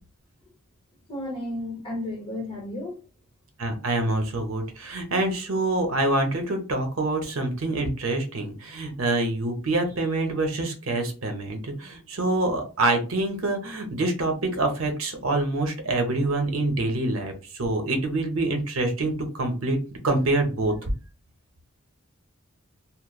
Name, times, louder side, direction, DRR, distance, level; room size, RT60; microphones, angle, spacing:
voice 1, 1.1-3.0, left 1 dB, 25° left, 0.9 m, -33 dB
voice 2, 3.6-19.8 20.0-20.9, right 2 dB, 75° right, 0.7 m, -26 dB
2.9 x 2.0 x 2.3 m
head